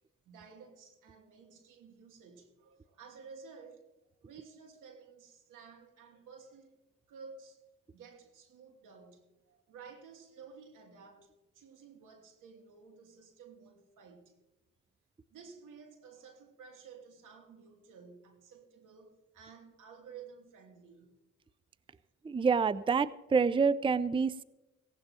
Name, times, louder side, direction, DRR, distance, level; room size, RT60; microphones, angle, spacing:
voice 1, 0.2-3.9 4.2-6.7 7.1-7.6 7.9-14.3 15.3-21.2 21.9-22.0, right 5 dB, 85° right, 3 dB, 2.8 m, -53 dB
voice 2, 22.2-24.4, right 5 dB, 15° right, 17 dB, 0.5 m, -27 dB
18.0 x 16.5 x 2.9 m, 1.0 s
cardioid pair, 65°, 31 cm